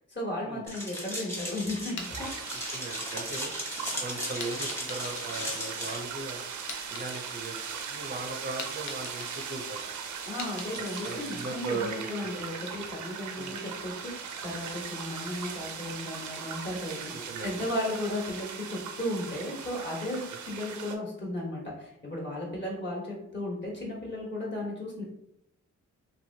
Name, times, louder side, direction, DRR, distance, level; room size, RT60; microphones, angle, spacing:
voice 1, 0.1-2.3 10.2-25.0, left 1 dB, 40° left, -4 dB, 1.3 m, -35 dB
sound 1, 0.7-6.0, left 1 dB, 10° left, 1.0 m, -37 dB
sound 2, 2.0-3.8 4.4-6.2 6.5-7.8 8.2-11.6, left 4 dB, 75° left, 0.6 m, -44 dB
sound 3, 2.0-20.9, right 6 dB, 85° right, 0.4 m, -39 dB
voice 2, 2.7-3.5 4.0-6.4 6.9-9.8 11.0-12.5 13.4-13.6 17.1-17.6, right 2 dB, 35° right, 1 dB, 0.5 m, -38 dB
2.9 x 2.6 x 2.7 m, 0.79 s
cardioid pair, 70°, 29 cm